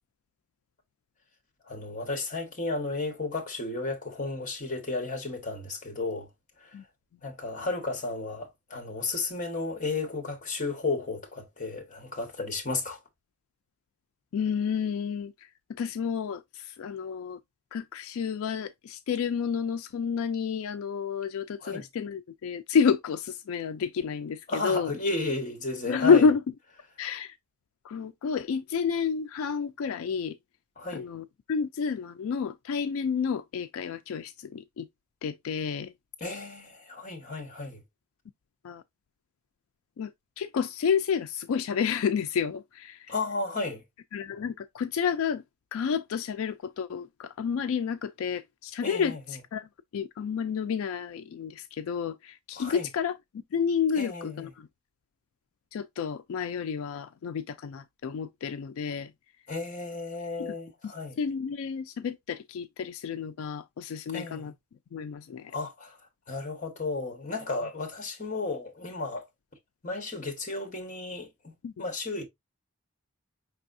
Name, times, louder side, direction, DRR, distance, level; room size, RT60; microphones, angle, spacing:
voice 1, 1.7-6.3 6.6-6.7 7.2-13.0 21.6-21.8 24.5-26.3 30.8-31.0 36.2-37.8 43.1-43.8 48.8-49.4 52.6-52.9 54.0-54.5 59.5-61.2 64.1-64.5 65.5-66.0 66.3-69.2 69.8-72.2, left 3 dB, 35° left, 1.3 m, -33 dB
voice 2, 14.3-17.4 17.7-24.9 25.9-26.4 27.0-27.4 27.8-30.4 30.9-34.9 35.2-35.9 38.6-38.8 40.0-43.1 44.1-45.4 45.7-53.2 53.5-54.7 55.7-59.1 60.4-60.5 60.8-64.5 64.9-65.5 71.6-71.7, left 6 dB, 75° left, 0.3 m, -30 dB
5.3 x 3.3 x 2.6 m
head